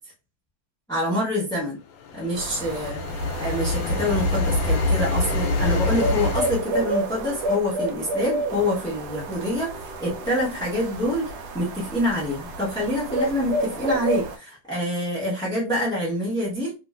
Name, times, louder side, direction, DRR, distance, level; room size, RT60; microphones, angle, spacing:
voice 1, 0.9-1.8 2.1-3.0 3.4-16.7, left 1 dB, 5° left, -8 dB, 0.6 m, -26 dB
sound 1, 1.9-6.6, left 2 dB, 90° left, 1.4 m, -25 dB
sound 2, 2.3-14.4, right 2 dB, 70° right, 1.0 m, -30 dB
2.9 x 2.8 x 2.3 m, 0.30 s
omnidirectional pair, 2.1 m